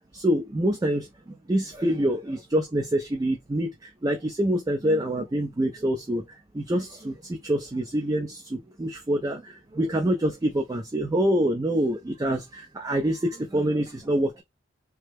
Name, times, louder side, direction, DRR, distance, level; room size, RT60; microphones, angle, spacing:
voice 1, 0.1-14.4, right 1 dB, 20° right, 0.4 m, -26 dB
3.3 x 2.1 x 3.3 m
head